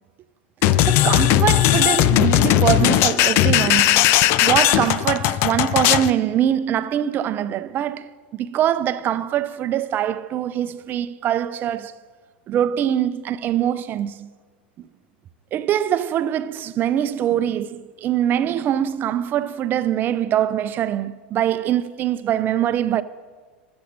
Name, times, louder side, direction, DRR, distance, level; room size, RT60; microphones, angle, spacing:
sound 1, 0.6-6.1, left 13 dB, 45° left, 0.5 m, -17 dB
voice 1, 0.9-4.1 4.4-12.0 12.5-14.3 15.5-23.0, right 10 dB, 35° right, 0.6 m, -23 dB
15.0 x 7.2 x 6.6 m
hypercardioid pair, 90°, 6 cm